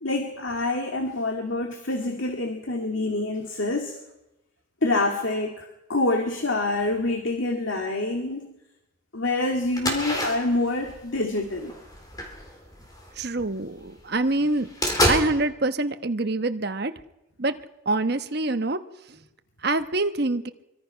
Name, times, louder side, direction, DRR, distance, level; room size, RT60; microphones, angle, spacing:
voice 1, 0.0-4.0 4.8-8.6 9.1-11.7, left 2 dB, 70° left, 3 dB, 2.1 m, -26 dB
sound 1, 9.7-13.6 14.0-14.1 14.4-15.2, equal, 20° left, 3.8 m, -28 dB
voice 2, 13.2-14.7 15.1-16.9 17.4-17.5 17.9-18.8 19.1-19.2 19.6-20.5, right 2 dB, 50° right, 9 dB, 1.1 m, -25 dB
24.5 x 23.5 x 5.7 m, 0.92 s
head